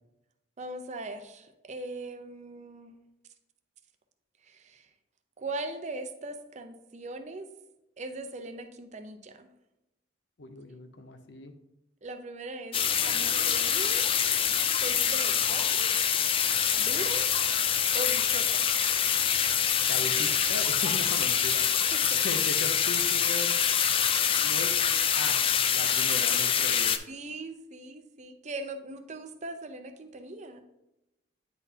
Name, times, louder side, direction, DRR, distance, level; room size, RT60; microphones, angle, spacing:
voice 1, 0.6-3.0 4.4-4.9 5.4-7.5 8.0-9.5 12.0-14.0 14.8-15.9 16.8-17.3 17.9-18.7 21.9-22.3 24.4-24.6 27.1-30.6, right 2 dB, 40° right, 7 dB, 0.6 m, -40 dB
voice 2, 10.4-11.6 19.9-21.6 22.1-23.6 24.4-27.0, left 2 dB, 65° left, 8 dB, 0.7 m, -38 dB
sound 1, 12.7-27.0, left 8 dB, 30° left, 0.3 m, -25 dB
9.5 x 4.0 x 2.7 m, 0.92 s
head